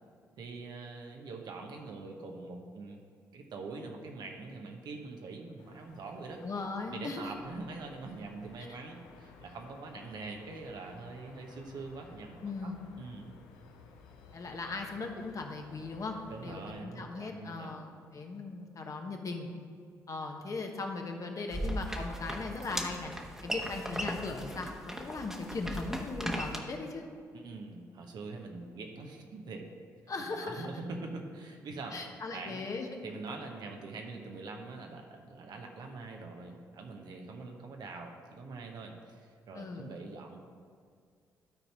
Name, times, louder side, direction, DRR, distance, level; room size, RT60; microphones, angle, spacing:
voice 1, 0.4-3.0 3.3-6.4 6.9-12.7 13.0-13.2 16.3-18.0 27.3-29.7 30.2-32.0 32.3-32.6 33.0-40.4, right 3 dB, 65° right, 2 dB, 1.1 m, -44 dB
sound 1, 5.6-16.8, left 5 dB, 85° left, 0.6 m, -56 dB
voice 2, 6.4-7.3 8.7-8.8 12.4-12.9 14.3-16.1 16.4-19.5 20.1-23.1 23.4-24.7 25.0-27.1 30.1-30.7 31.9-32.9 39.5-39.9, left 3 dB, 45° left, 3 dB, 1.2 m, -38 dB
sound 2, 21.5-26.6, equal, 5° right, 1.2 m, -37 dB
12.0 x 4.3 x 4.3 m, 2.2 s
hypercardioid pair, 45°, 8 cm